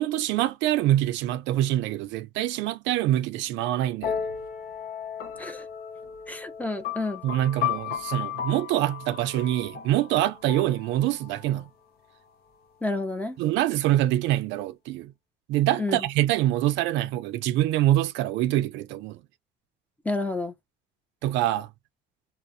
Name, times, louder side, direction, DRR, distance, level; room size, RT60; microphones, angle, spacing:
voice 1, 0.0-4.2 7.2-11.7 13.4-15.1 15.5-19.2 21.2-21.7, right 14 dB, 80° right, 0.5 m, -25 dB
sound 1, 4.0-11.6, left 9 dB, 55° left, 0.6 m, -34 dB
voice 2, 6.3-7.2 12.8-13.4 15.8-16.0 20.0-20.5, left 2 dB, 10° left, 0.6 m, -30 dB
2.4 x 2.1 x 2.5 m
cardioid pair, 140°, 19 cm